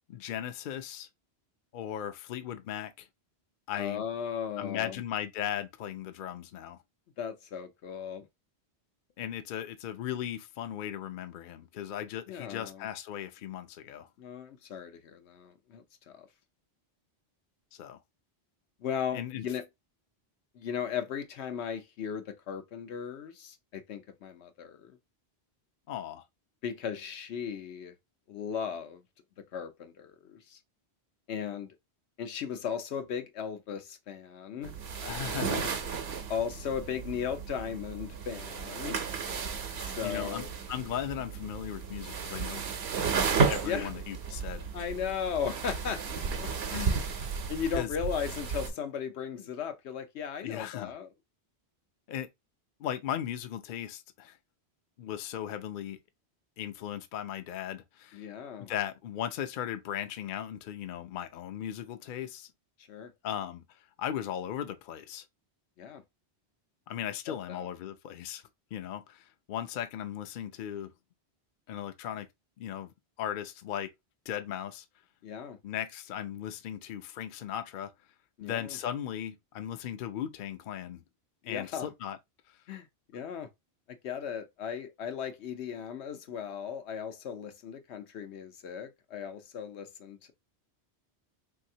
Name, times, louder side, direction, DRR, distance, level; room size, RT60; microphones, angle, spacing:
voice 1, 0.1-1.1 1.7-3.1 3.7-4.0 4.6-6.8 9.2-14.1 17.7-18.0 19.1-19.5 25.9-26.2 35.0-35.7 40.0-42.7 43.5-44.6 47.8-47.9 50.4-50.9 52.1-52.3 52.8-54.4 55.0-56.0 56.6-58.3 58.6-62.5 63.2-65.2 66.9-68.4 68.7-70.9 71.7-72.3 72.6-72.9 73.2-73.9 74.3-74.8 75.6-77.9 78.4-81.0 81.4-82.2 82.5-82.6, left 10 dB, 60° left, 0.6 m, -37 dB
voice 2, 3.7-5.0 7.2-8.3 12.3-12.9 14.2-16.3 18.8-19.6 20.5-25.0 26.6-27.9 28.3-29.0 29.5-30.6 31.3-31.7 32.2-34.7 36.3-39.0 39.8-40.5 43.6-43.9 44.7-47.0 47.5-51.1 58.1-58.7 62.9-63.1 65.8-66.0 67.3-67.7 75.2-75.6 78.4-78.8 81.4-81.9 82.7-82.9 83.1-83.5 83.9-90.3, left 7 dB, 85° left, 1.0 m, -37 dB
sound 1, 34.6-48.7, right 5 dB, 70° right, 1.0 m, -33 dB
3.3 x 2.8 x 2.6 m
omnidirectional pair, 1.1 m